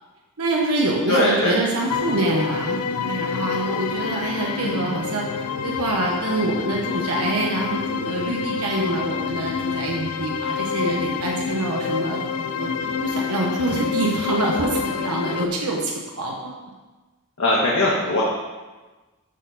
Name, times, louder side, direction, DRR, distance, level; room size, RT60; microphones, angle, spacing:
voice 1, 0.4-5.2 5.6-12.2 12.6-16.6, right 2 dB, 90° right, -1 dB, 1.1 m, -25 dB
voice 2, 1.1-1.6 4.6-4.8 17.4-18.2, left 1 dB, 65° left, -5 dB, 1.3 m, -20 dB
sound 1, 1.9-15.5, left 6 dB, 85° left, 0.4 m, -27 dB
12.5 x 4.4 x 4.1 m, 1.2 s
head